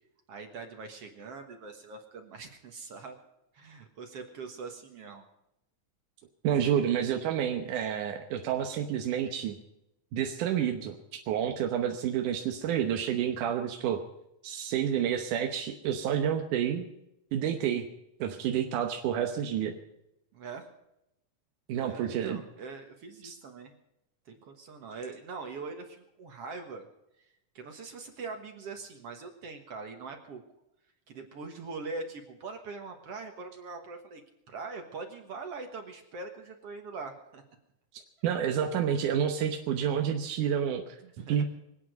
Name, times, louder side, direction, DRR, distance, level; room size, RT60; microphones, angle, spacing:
voice 1, 0.3-3.2 3.5-5.3 20.3-20.7 21.8-23.7 24.3-26.9 27.2-30.4 31.1-37.4 41.0-41.4, right 4 dB, 55° right, 5 dB, 2.3 m, -42 dB
voice 2, 6.4-9.6 10.1-14.0 14.4-16.9 17.3-17.8 18.2-19.7 21.7-22.4 23.2-23.3 38.2-41.0 41.3-41.5, right 9 dB, 90° right, 4 dB, 2.6 m, -29 dB
25.5 x 8.7 x 5.1 m, 0.85 s
omnidirectional pair, 3.5 m